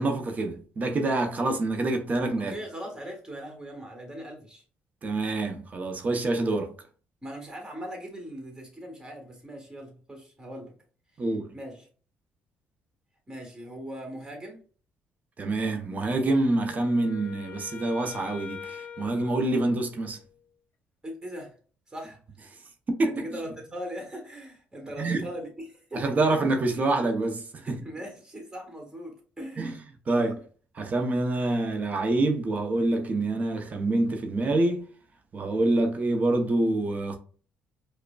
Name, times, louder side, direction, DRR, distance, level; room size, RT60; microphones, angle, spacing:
voice 1, 0.0-2.5 5.0-6.7 11.2-11.5 15.4-20.2 23.0-23.1 25.0-25.2 25.9-27.8 29.6-29.7 30.1-30.4 30.7-34.8 35.3-37.2, right 2 dB, 35° right, 0.7 m, -26 dB
voice 2, 2.4-4.6 7.2-10.8 11.1-11.3 11.5-11.9 13.3-14.6 21.0-21.6 21.9-22.2 23.0-26.3 27.6-29.8 30.1-30.3, equal, 15° right, 1.4 m, -40 dB
Wind instrument woodwind instrument, 16.5-20.4, left 7 dB, 50° left, 0.9 m, -44 dB
4.8 x 2.1 x 2.3 m
cardioid pair, 90°, 4 cm